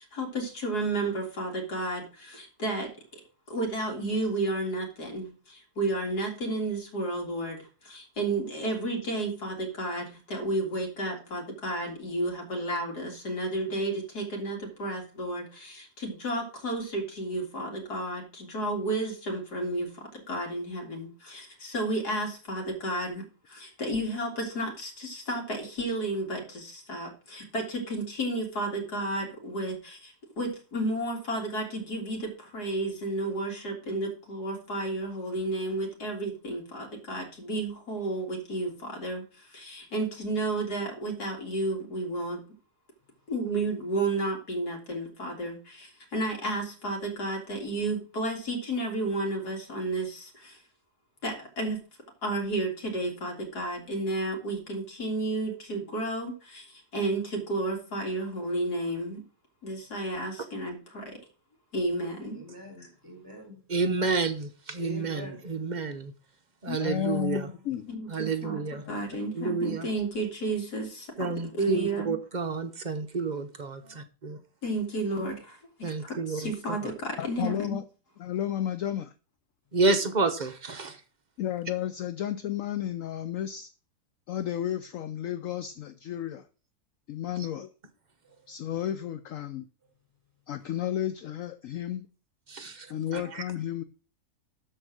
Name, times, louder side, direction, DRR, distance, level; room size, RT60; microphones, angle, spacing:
voice 1, 0.0-3.2 3.5-42.4 43.3-50.6 51.2-51.8 52.2-59.2 59.6-61.2 61.7-62.4 62.8-62.9 67.9-71.1 71.6-72.2 74.6-77.8, right 2 dB, 85° left, 2.9 m, -32 dB
voice 2, 62.3-63.6 64.8-65.4 88.2-88.4 92.8-92.9, equal, 10° right, 3.5 m, -44 dB
voice 3, 63.7-66.1 66.6-67.5 68.1-68.8 69.3-69.9 71.2-73.5 75.8-76.5 79.7-81.0 92.5-92.9 93.1-93.4, right 4 dB, 35° right, 0.9 m, -29 dB
voice 4, 66.7-67.9 68.8-69.0 77.2-77.8 78.2-79.1 81.4-83.7 84.3-86.5 87.1-87.7 88.5-89.7 90.5-92.1 92.9-93.8, left 11 dB, 65° left, 0.9 m, -32 dB
12.5 x 4.5 x 6.2 m
omnidirectional pair, 1.6 m